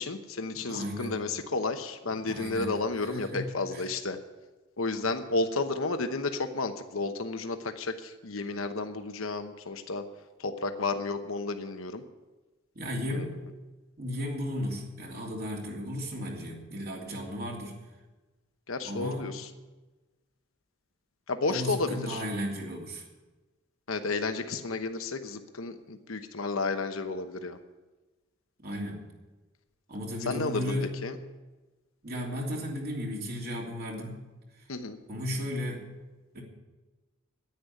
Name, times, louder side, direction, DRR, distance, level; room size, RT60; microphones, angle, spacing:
voice 1, 0.0-4.2 4.8-10.0 10.4-12.0 13.1-13.3 18.7-19.5 21.3-22.2 23.9-27.6 30.3-31.1 34.7-35.0, left 3 dB, 80° left, 8 dB, 1.0 m, -32 dB
voice 2, 0.5-1.2 2.2-2.7 3.0-3.9 12.7-13.4 14.0-17.8 18.8-19.3 21.5-23.1 28.6-29.0 29.9-31.0 32.0-34.3 34.6-34.7 35.1-35.9 36.3-36.4, equal, 50° right, -1 dB, 3.0 m, -35 dB
10.5 x 9.7 x 9.7 m, 1.2 s
head